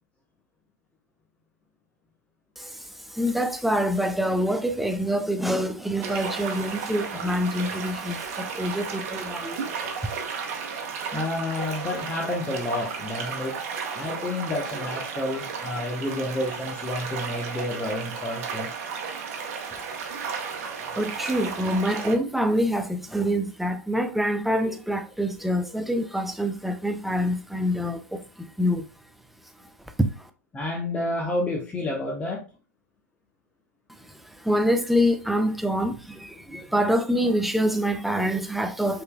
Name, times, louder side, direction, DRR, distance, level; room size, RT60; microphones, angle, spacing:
voice 1, 2.6-9.7 19.7-19.8 21.0-28.8 30.0-30.3 34.4-39.0, equal, ahead, 0.5 m, -26 dB
sound 1, 6.0-22.1, right 5 dB, 55° right, 1.0 m, -34 dB
voice 2, 11.1-13.6 13.9-18.7 30.5-32.4, left 2 dB, 15° left, 0.9 m, -30 dB
5.4 x 3.8 x 2.2 m
figure-of-eight pair, 100°, 9 cm